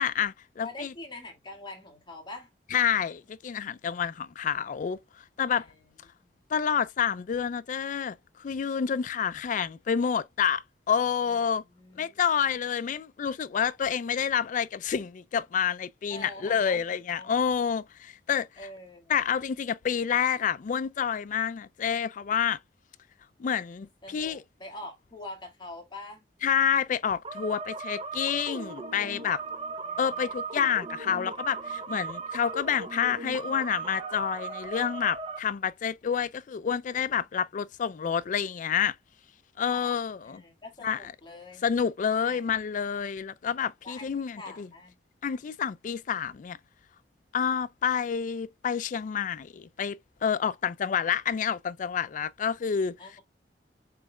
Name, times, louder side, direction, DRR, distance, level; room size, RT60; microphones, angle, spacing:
voice 1, 0.0-0.9 2.7-5.0 5.4-5.7 6.5-11.6 12.0-18.5 19.1-22.6 23.4-24.4 26.4-29.4 30.0-39.0 39.6-40.4 40.8-41.0 41.6-44.7 45.2-46.6 47.3-53.0, left 7 dB, 45° left, 0.3 m, -28 dB
voice 2, 0.6-2.5 5.5-5.7 6.2-6.3 11.3-12.4 16.1-17.8 18.6-19.2 24.0-26.3 29.8-30.6 39.7-41.6 42.2-42.4 43.8-44.9 53.0-53.2, left 2 dB, 25° left, 1.9 m, -45 dB
sound 1, 27.2-35.4, right 4 dB, 30° right, 0.7 m, -37 dB
7.1 x 3.2 x 2.2 m
head